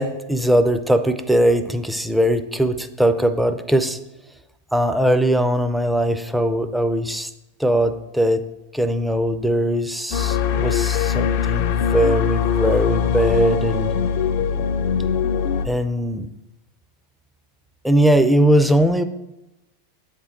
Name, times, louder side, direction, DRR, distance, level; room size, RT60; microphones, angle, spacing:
voice 1, 0.0-4.0 4.7-7.3 7.6-8.4 8.7-13.9 15.6-16.3 17.8-19.0, right 1 dB, 5° right, 9 dB, 0.5 m, -20 dB
sound 1, 10.1-15.7, left 8 dB, 55° left, 0.5 m, -21 dB
7.9 x 3.7 x 4.3 m, 0.96 s
hypercardioid pair, 95°, 0 cm